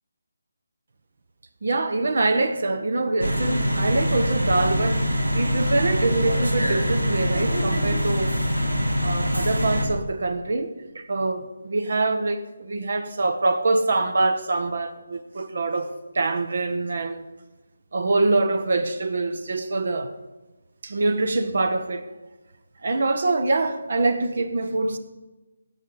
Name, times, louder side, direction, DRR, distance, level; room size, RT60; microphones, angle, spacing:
voice 1, 1.6-8.4 9.0-15.9 16.1-17.2 17.9-20.1 20.8-22.0 22.8-25.0, right 2 dB, 50° right, 1.0 m, -24 dB
sound 1, 3.2-9.8, equal, 80° right, 2.2 m, -24 dB
20.0 x 8.8 x 3.9 m
figure-of-eight pair, 150°, 0 cm